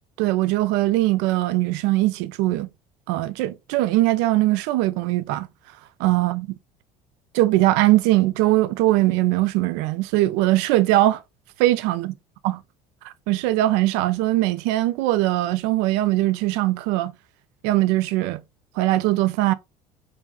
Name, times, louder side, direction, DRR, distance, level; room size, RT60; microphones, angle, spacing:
voice 1, 0.2-2.7 3.1-5.5 6.0-6.5 7.3-11.2 11.6-12.1 13.0-17.1 17.6-18.4 18.8-19.5, right 16 dB, 60° right, 0.4 m, -21 dB
4.5 x 2.6 x 2.4 m
figure-of-eight pair, 60°, 20 cm